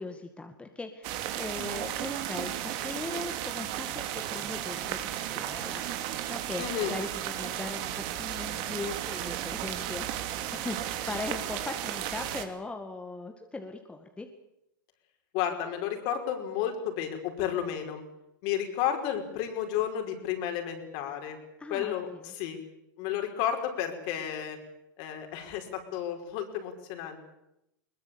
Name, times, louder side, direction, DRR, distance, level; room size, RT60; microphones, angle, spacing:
voice 1, 0.0-5.8 6.3-14.3 21.6-21.9 22.2-22.3, left 3 dB, 10° left, 5 dB, 2.1 m, -39 dB
sound 1, 1.0-12.4, right 11 dB, 50° right, 3.0 m, -34 dB
voice 2, 6.6-6.9 15.3-18.0 18.4-21.4 21.7-22.1 22.4-22.6 23.0-24.6 25.0-27.2, left 10 dB, 50° left, 4 dB, 5.6 m, -32 dB
21.5 x 20.5 x 8.8 m, 0.84 s
hypercardioid pair, 120°, 11 cm